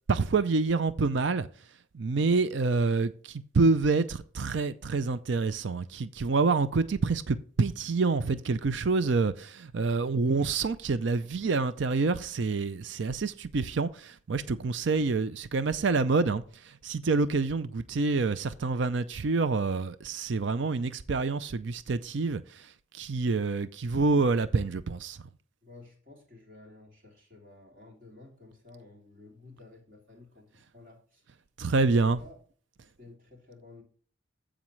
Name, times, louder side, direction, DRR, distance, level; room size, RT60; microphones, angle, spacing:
voice 1, 0.1-1.5 1.9-25.2 31.6-32.2, right 4 dB, 65° right, 0.5 m, -27 dB
voice 2, 25.6-31.2 31.7-32.4 33.0-33.8, left 2 dB, 45° right, 3.1 m, -53 dB
14.5 x 5.1 x 3.2 m
head